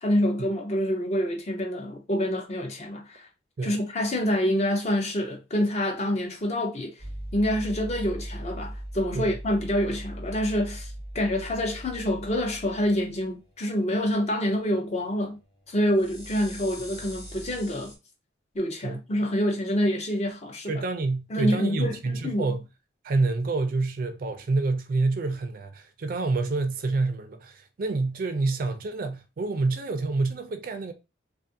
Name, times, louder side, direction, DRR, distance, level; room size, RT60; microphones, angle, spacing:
voice 1, 0.0-3.3 3.6-6.9 7.3-15.4 15.7-17.9 18.5-20.7 21.3-22.5, equal, 35° left, 0.5 m, -27 dB
sound 1, 7.0-18.0, right 1 dB, 60° left, 1.2 m, -40 dB
voice 2, 20.7-22.6 23.0-30.9, right 3 dB, 45° right, 0.3 m, -27 dB
2.4 x 2.4 x 2.6 m
head